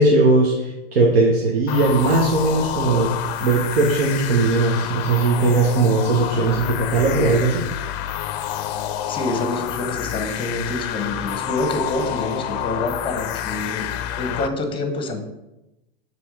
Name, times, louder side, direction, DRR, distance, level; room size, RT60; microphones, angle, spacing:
voice 1, 0.0-3.1 3.4-7.6, right 3 dB, 70° right, -1 dB, 1.2 m, -18 dB
sound 1, 1.7-14.5, left 11 dB, 45° left, 0.5 m, -28 dB
voice 2, 9.1-15.2, left 2 dB, 15° left, 5 dB, 1.2 m, -27 dB
6.9 x 3.5 x 4.9 m, 0.94 s
hypercardioid pair, 105°, 31 cm